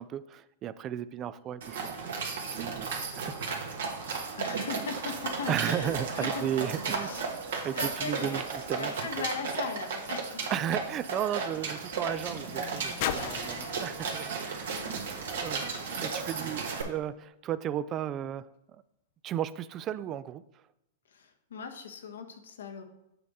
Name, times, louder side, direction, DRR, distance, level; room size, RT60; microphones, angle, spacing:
voice 1, 0.0-2.2 2.5-3.9 5.5-7.1 7.6-9.3 10.5-14.7 15.1-15.6 16.0-18.8 19.2-20.4, right 10 dB, 30° right, 16 dB, 0.3 m, -35 dB
sound 1, 1.6-16.8, right 5 dB, 70° right, 1.4 m, -35 dB
voice 2, 4.4-7.3 7.7-8.4 8.8-10.4 14.7-15.0 21.1-22.8, left 5 dB, 75° left, 6 dB, 1.0 m, -39 dB
sound 2, 9.6-16.0 16.8-16.9, left 10 dB, 55° left, 0.5 m, -41 dB
7.7 x 3.4 x 5.4 m, 0.86 s
hypercardioid pair, 115°, 0 cm